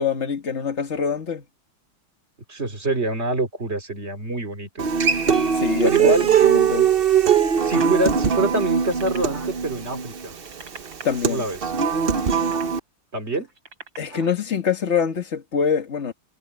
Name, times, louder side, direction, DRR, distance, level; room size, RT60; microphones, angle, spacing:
voice 1, 0.0-1.4 5.5-6.1 6.4-6.9 11.0-11.5 14.0-16.1, left 7 dB, 35° left, 2.0 m, -24 dB
voice 2, 2.5-4.9 5.8-6.3 7.6-10.3 11.2-11.7 13.1-13.5, right 2 dB, 30° right, 3.1 m, -25 dB
Human voice / Acoustic guitar, 4.8-12.8, right 7 dB, 50° right, 0.7 m, -21 dB
sound 1, 5.6-6.4 7.0-7.1 7.4-8.0 8.6-9.5 10.3-11.0 12.3-12.7 13.5-14.3 15.1-15.2, right 3 dB, 65° right, 7.9 m, -40 dB
omnidirectional pair, 2.3 m